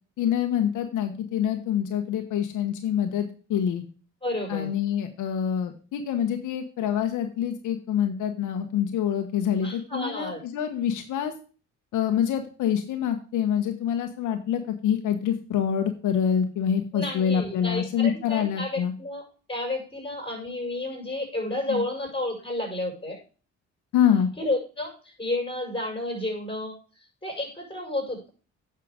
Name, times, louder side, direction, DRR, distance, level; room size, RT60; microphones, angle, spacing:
voice 1, 0.2-3.8 4.5-11.3 11.9-18.9 21.7-21.8 23.9-24.3, left 9 dB, 80° left, 5 dB, 1.2 m, -26 dB
voice 2, 4.2-4.7 9.6-10.4 16.9-19.2 19.5-23.2 24.4-28.3, left 1 dB, 15° left, 0 dB, 5.9 m, -31 dB
9.4 x 5.9 x 5.0 m, 0.37 s
cardioid pair, 90°, 30 cm